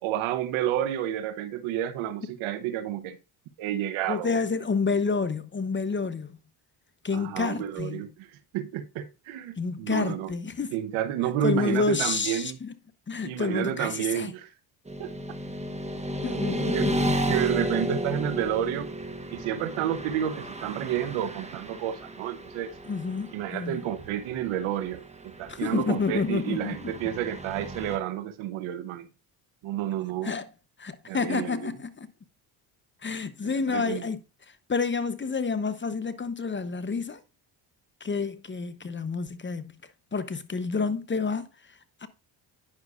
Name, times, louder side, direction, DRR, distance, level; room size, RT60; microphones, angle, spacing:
voice 1, 0.0-3.2 3.6-4.4 7.1-8.3 8.5-10.3 10.7-12.6 13.2-14.5 15.0-15.1 16.7-16.9 17.3-18.9 19.3-22.7 23.3-29.1 29.6-30.4 31.1-31.7 33.4-34.1, right 11 dB, 75° right, 0.9 m, -30 dB
voice 2, 4.1-6.4 7.0-8.1 9.6-10.7 11.4-12.7 13.1-14.3 16.2-17.3 22.9-23.8 25.5-26.8 30.2-30.4 30.8-32.1 33.0-34.2 34.7-37.2 38.0-39.8 40.1-42.1, left 4 dB, 25° left, 0.8 m, -29 dB
Motorcycle / Traffic noise roadway noise, 14.9-28.0, right 1 dB, 15° right, 1.1 m, -33 dB
9.7 x 6.1 x 2.4 m
supercardioid pair, 60°, 48 cm